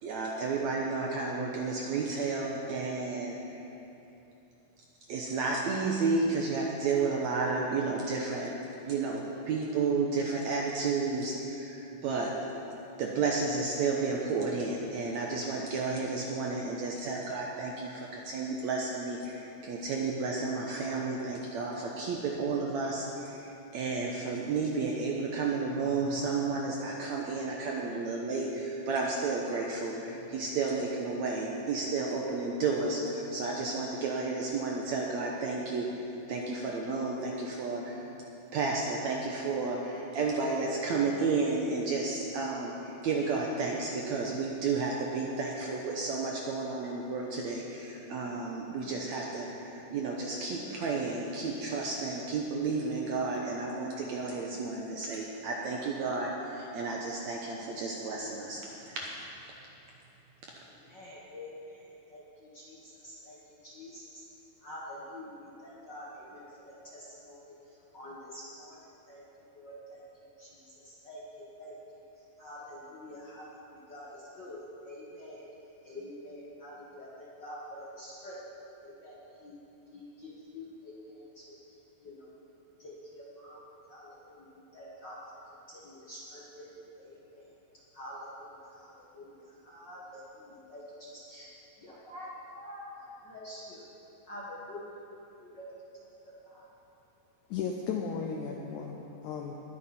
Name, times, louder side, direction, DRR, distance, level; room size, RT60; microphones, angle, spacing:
voice 1, 0.0-3.6 5.1-8.5 8.8-12.3 13.0-38.1 38.5-59.1, right 4 dB, 70° right, -1 dB, 1.8 m, -32 dB
voice 2, 60.7-64.2 64.6-69.2 69.5-75.4 75.8-78.4 78.8-79.6 79.9-82.3 82.8-83.6 83.9-87.5 87.9-91.5 91.8-93.9 94.3-95.0 95.4-95.6 95.9-96.1 96.4-96.7, left 1 dB, 50° left, -6 dB, 1.3 m, -47 dB
voice 3, 97.5-99.5, left 6 dB, 75° left, 1 dB, 1.8 m, -35 dB
20.0 x 9.8 x 4.2 m, 2.9 s
omnidirectional pair, 4.2 m